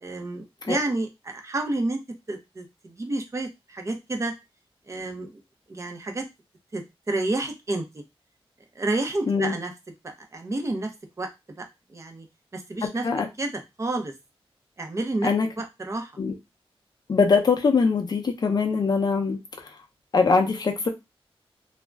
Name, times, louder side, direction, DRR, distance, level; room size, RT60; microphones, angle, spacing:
voice 1, 0.0-2.0 2.3-4.3 4.9-5.3 5.7-6.3 6.7-6.8 7.1-7.8 8.8-9.7 10.3-10.9 11.2-11.3 11.6-12.3 12.5-13.0 13.4-13.5 13.8-14.1 14.8-15.3 15.6-16.1, right 2 dB, 30° right, 0.6 m, -29 dB
voice 2, 17.1-19.7 20.1-20.9, left 4 dB, 45° left, 0.5 m, -22 dB
2.4 x 2.1 x 3.3 m
wide cardioid pair, 150°, 10 cm